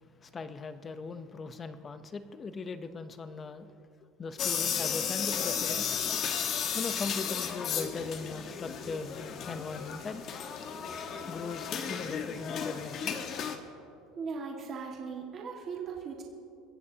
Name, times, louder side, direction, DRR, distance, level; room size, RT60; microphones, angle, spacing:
voice 1, 0.2-3.7 4.2-6.0 6.7-10.2 11.3-13.2, left 4 dB, 20° left, 11 dB, 0.7 m, -39 dB
sound 1, 4.4-13.6, left 7 dB, 35° left, 1.2 m, -34 dB
voice 2, 14.2-16.2, right 5 dB, 30° right, -1 dB, 1.8 m, -38 dB
29.5 x 15.5 x 2.8 m, 2.6 s
cardioid pair, 160°, 0 cm